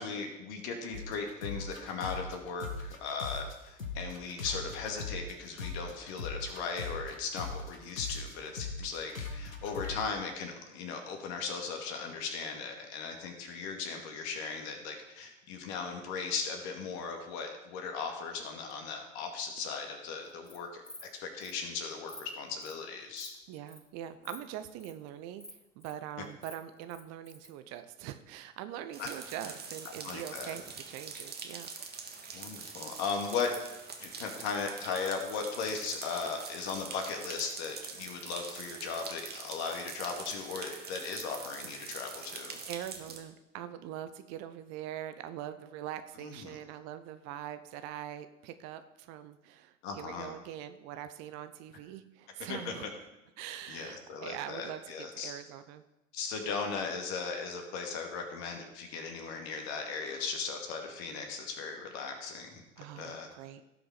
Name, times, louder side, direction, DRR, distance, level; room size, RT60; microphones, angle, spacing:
voice 1, 0.0-23.3 29.0-29.1 30.0-30.5 32.3-33.5 34.0-42.6 46.2-46.6 49.8-50.3 52.5-52.7 53.7-55.3 56.1-62.6 63.0-63.3, left 5 dB, 55° left, 3 dB, 2.4 m, -37 dB
sound 1, 0.9-3.5 3.8-10.0, left 4 dB, 80° left, 1.6 m, -39 dB
Insect, 20.2-20.6 20.8-21.1 21.4-21.5 21.9-22.2 22.6-22.8 23.1-23.3 23.7-23.9 24.2-24.4 24.6-24.9 25.4-25.9 26.2-27.5, left 1 dB, 5° left, 1.5 m, -49 dB
voice 2, 23.5-25.4 25.8-31.7 42.7-52.9 53.4-55.8 60.0-60.2 62.8-63.6, right 11 dB, 40° right, 11 dB, 0.8 m, -43 dB
sound 2, 28.9-43.2, right 5 dB, 25° right, 1.7 m, -44 dB
17.0 x 6.0 x 4.9 m, 0.99 s
figure-of-eight pair, 75°, 40 cm